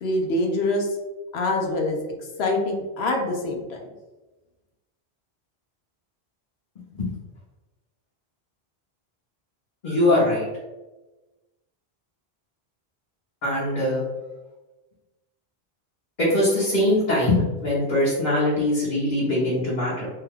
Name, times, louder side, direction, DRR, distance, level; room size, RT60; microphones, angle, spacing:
voice 1, 0.0-0.9 1.3-2.0 2.4-3.8, left 2 dB, 85° left, 2 dB, 0.9 m, -24 dB
voice 2, 9.8-10.4 13.4-14.0 16.2-20.1, left 1 dB, 45° left, -9 dB, 1.0 m, -22 dB
2.7 x 2.3 x 3.4 m, 1.1 s
omnidirectional pair, 1.1 m